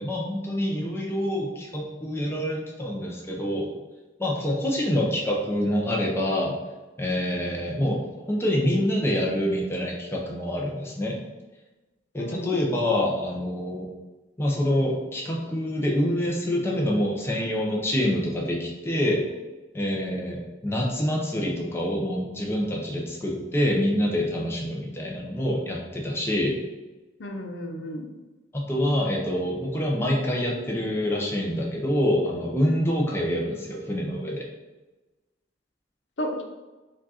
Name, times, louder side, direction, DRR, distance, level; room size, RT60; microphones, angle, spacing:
voice 1, 0.0-3.7 4.2-6.6 7.0-11.2 12.1-13.9 14.4-19.2 19.7-26.5 28.5-34.4, left 1 dB, 15° left, -2 dB, 0.6 m, -26 dB
voice 2, 12.2-12.6 27.2-28.1 36.2-36.4, equal, 75° left, 2 dB, 0.7 m, -32 dB
5.0 x 2.5 x 4.1 m, 1.1 s
head